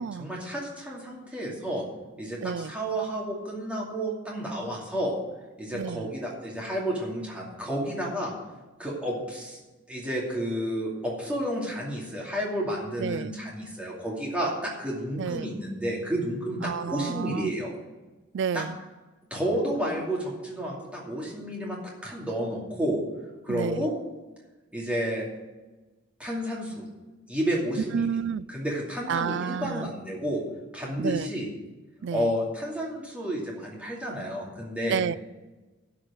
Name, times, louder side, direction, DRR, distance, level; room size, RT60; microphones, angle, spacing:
voice 1, 0.2-1.8 2.2-5.1 5.6-8.3 8.8-9.6 9.9-17.7 18.5-18.6 19.3-23.0 23.4-23.9 24.7-25.3 26.2-26.9 27.3-28.1 28.5-30.4 30.7-31.5 32.1-35.0, equal, 5° right, 2.5 m, -31 dB
voice 2, 2.4-2.7 5.7-6.1 13.0-13.3 15.2-15.5 16.6-17.5 18.3-18.7 23.5-23.9 27.9-28.4 29.1-29.9 31.0-31.3 32.0-32.3 34.9-35.2, right 7 dB, 55° right, 0.3 m, -30 dB
13.0 x 4.9 x 8.6 m
head